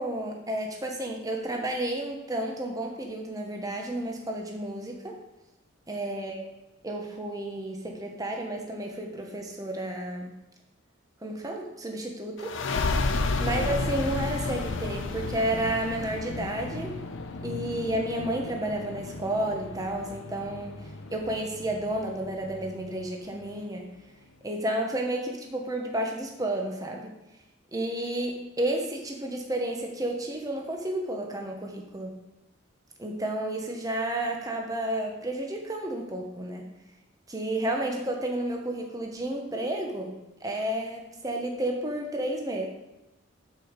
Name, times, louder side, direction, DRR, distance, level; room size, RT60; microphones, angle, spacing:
voice 1, 0.0-5.1 5.9-6.5 6.8-10.3 11.2-12.6 13.4-17.0 17.4-20.8 21.1-23.9 24.4-27.1 27.7-32.1 33.0-36.7 37.3-42.7, right 1 dB, 15° right, 1 dB, 1.1 m, -31 dB
sound 1, 12.4-23.7, left 3 dB, 65° left, 0.7 m, -33 dB
6.5 x 5.4 x 6.6 m, 0.97 s
head